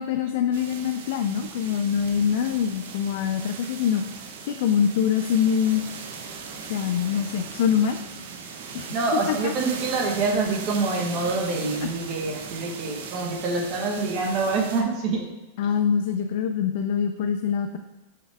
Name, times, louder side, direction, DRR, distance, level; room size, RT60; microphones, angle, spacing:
voice 1, 0.0-4.0 4.4-5.8 6.7-8.0 8.7-8.9 9.3-9.5 11.8-11.9 15.6-17.8, left 8 dB, 65° left, 7 dB, 0.4 m, -24 dB
sound 1, 0.5-14.8, right 5 dB, 75° right, 1.1 m, -38 dB
voice 2, 8.9-15.3, right 3 dB, 35° right, 1 dB, 1.3 m, -26 dB
6.4 x 5.6 x 3.5 m, 1.0 s
supercardioid pair, 145°, 0 cm